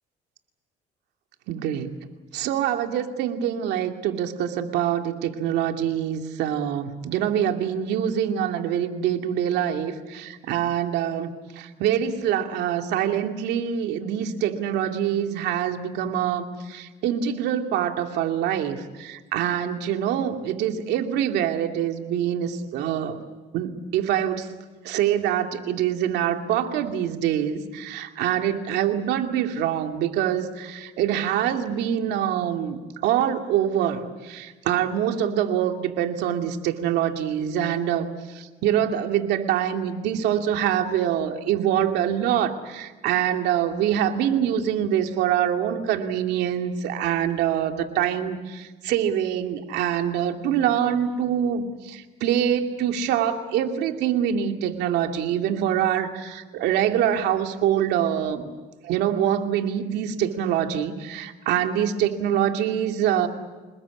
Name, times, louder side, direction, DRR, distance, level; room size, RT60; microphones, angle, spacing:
voice 1, 1.5-1.9 2.3-11.3 11.6-23.2 23.5-24.5 24.8-58.5 58.8-63.3, right 10 dB, 85° right, 5 dB, 2.5 m, -25 dB
28.0 x 20.5 x 8.5 m, 1.2 s
cardioid pair, 110°, 17 cm